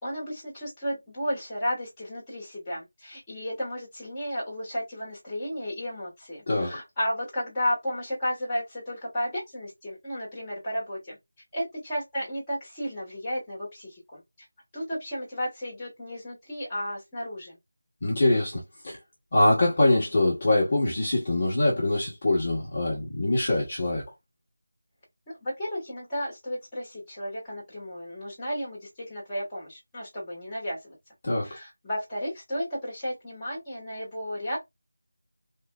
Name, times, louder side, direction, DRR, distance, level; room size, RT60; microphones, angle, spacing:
voice 1, 0.0-11.2 11.5-14.2 14.7-17.6 25.3-31.0 31.4-34.6, equal, 5° left, 1.6 m, -33 dB
voice 2, 6.5-6.8 18.0-19.0 19.3-24.0 31.2-31.5, left 2 dB, 25° left, 1.2 m, -24 dB
3.6 x 2.6 x 3.4 m
figure-of-eight pair, 180°, 0 cm